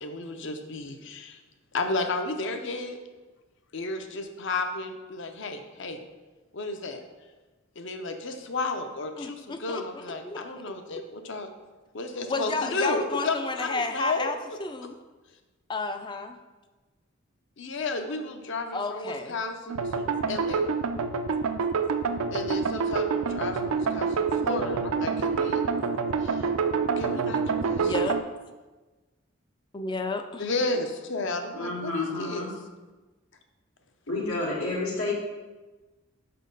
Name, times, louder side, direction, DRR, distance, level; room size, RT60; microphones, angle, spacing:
voice 1, 0.0-1.4 1.7-3.0 3.7-6.0 6.5-7.0 7.8-11.5 11.9-14.3 17.6-20.7 22.3-25.6 26.2-26.5 27.0-27.9 30.4-32.5, left 2 dB, 55° left, 6 dB, 0.6 m, -32 dB
voice 2, 9.2-10.4 12.3-15.0 15.7-16.4 18.7-19.4 27.8-28.2 29.7-30.5, left 3 dB, 20° left, 7 dB, 0.3 m, -32 dB
sound 1, 19.7-28.2, right 5 dB, 85° right, 0.4 m, -27 dB
voice 3, 31.5-32.5 34.1-35.1, left 2 dB, 85° left, -4 dB, 1.9 m, -30 dB
5.4 x 4.3 x 5.2 m, 1.2 s
head